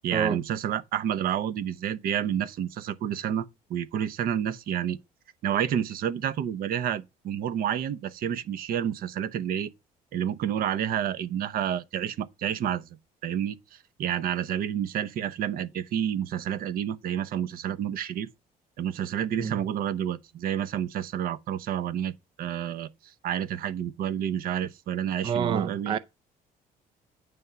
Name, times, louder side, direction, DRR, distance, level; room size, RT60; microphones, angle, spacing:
voice 1, 0.0-5.0 5.4-9.7 10.1-18.3 18.8-22.1 22.4-22.9 23.2-26.0, right 9 dB, 65° right, 0.8 m, -29 dB
voice 2, 25.2-26.0, right 7 dB, 30° right, 0.4 m, -28 dB
9.4 x 3.6 x 6.7 m
cardioid pair, 135°, 16 cm